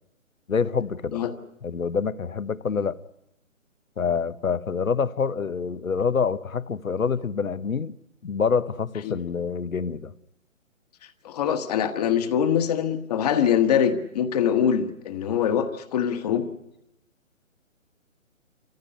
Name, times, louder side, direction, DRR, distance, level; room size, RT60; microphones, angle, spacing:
voice 1, 0.5-1.2 1.6-3.0 4.0-8.0 8.2-10.1, left 5 dB, 85° left, 1.1 m, -26 dB
voice 2, 11.2-16.5, left 8 dB, 30° left, 1.4 m, -23 dB
28.0 x 15.0 x 9.8 m
figure-of-eight pair, 140°, 40 cm